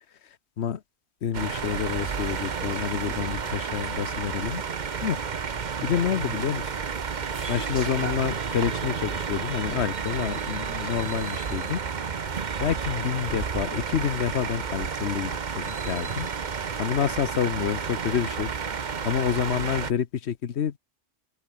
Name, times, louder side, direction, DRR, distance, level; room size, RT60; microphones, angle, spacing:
voice 1, 1.2-4.6 5.0-5.2 5.8-6.7 7.5-11.8 12.6-16.3 16.8-18.5 19.0-20.8, left 8 dB, 80° left, 1.2 m, -28 dB
sound 1, 1.3-19.9, right 6 dB, 45° right, 1.0 m, -31 dB
sound 2, 6.2-11.8, left 1 dB, 40° left, 6.9 m, -58 dB
sound 3, 7.3-9.7, right 1 dB, 25° right, 5.8 m, -51 dB
open air
omnidirectional pair, 1.1 m